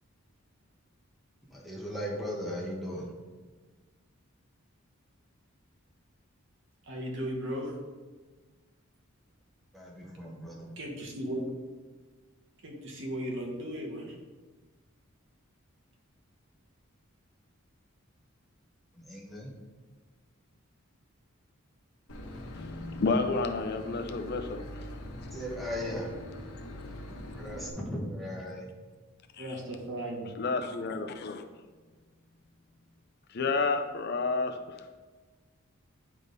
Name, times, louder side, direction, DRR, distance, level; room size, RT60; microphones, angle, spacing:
voice 1, 1.5-3.1 9.7-10.7 19.0-19.5 25.3-26.1 27.3-28.7, equal, ahead, -4 dB, 1.2 m, -37 dB
voice 2, 6.9-7.7 10.8-11.5 12.6-14.1 29.4-30.3, equal, 60° right, 0 dB, 1.2 m, -36 dB
Boat Water vehicle / Engine, 22.1-27.7, left 1 dB, 85° left, 1.0 m, -43 dB
voice 3, 22.5-24.6 29.4-29.5 30.4-31.4 33.3-34.6, left 3 dB, 50° left, 6 dB, 0.4 m, -30 dB
9.4 x 3.6 x 4.0 m, 1.4 s
head